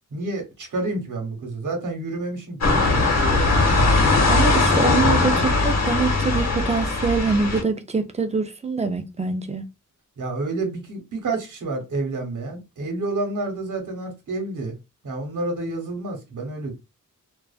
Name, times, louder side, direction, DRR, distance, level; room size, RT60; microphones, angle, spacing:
voice 1, 0.1-3.4 3.8-3.9 10.2-14.7 15.0-16.7, right 2 dB, 70° right, 1.0 m, -29 dB
sound 1, 2.6-7.6, left 3 dB, 55° left, 1.0 m, -19 dB
voice 2, 4.3-9.6, right 4 dB, 20° right, 0.5 m, -24 dB
2.4 x 2.3 x 2.4 m
cardioid pair, 60°, 32 cm